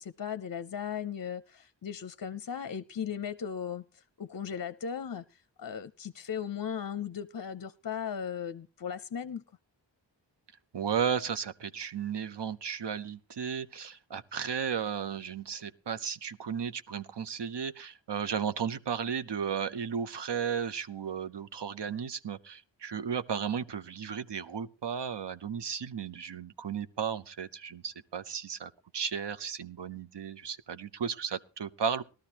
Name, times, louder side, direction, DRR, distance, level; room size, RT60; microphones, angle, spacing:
voice 1, 0.0-9.4, left 8 dB, 50° left, 0.5 m, -37 dB
voice 2, 10.7-32.0, right 7 dB, 65° right, 0.8 m, -34 dB
18.5 x 13.0 x 2.9 m
wide cardioid pair, 45°, 44 cm